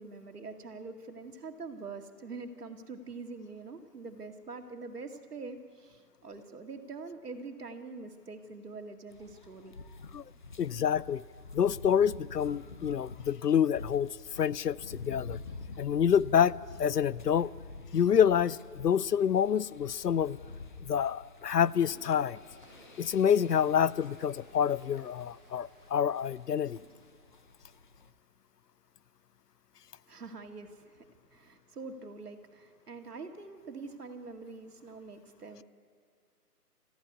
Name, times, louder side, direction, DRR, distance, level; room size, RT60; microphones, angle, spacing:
voice 1, 0.0-9.8 30.1-35.6, right 3 dB, 70° right, 2.2 m, -44 dB
sound 1, 9.1-28.1, left 3 dB, 30° left, 0.8 m, -48 dB
voice 2, 10.6-11.2 11.5-14.1 14.4-15.4 15.8-17.5 17.9-20.4 20.9-22.4 23.0-26.8, left 8 dB, 75° left, 0.7 m, -27 dB
Toilet flush, 21.6-27.4, equal, ahead, 7.9 m, -60 dB
25.0 x 14.5 x 9.7 m
figure-of-eight pair, 150°, 49 cm